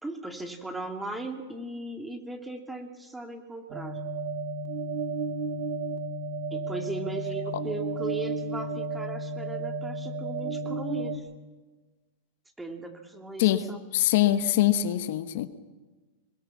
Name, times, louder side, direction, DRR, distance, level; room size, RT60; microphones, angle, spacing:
voice 1, 0.0-4.0 6.5-11.3 12.6-13.8, right 2 dB, 5° right, 5 dB, 2.3 m, -37 dB
sound 1, 3.7-11.2, right 3 dB, 65° right, 2.5 m, -33 dB
voice 2, 13.9-15.5, left 13 dB, 65° left, 10 dB, 1.3 m, -23 dB
21.0 x 21.0 x 7.1 m, 1.3 s
hypercardioid pair, 130°, 0 cm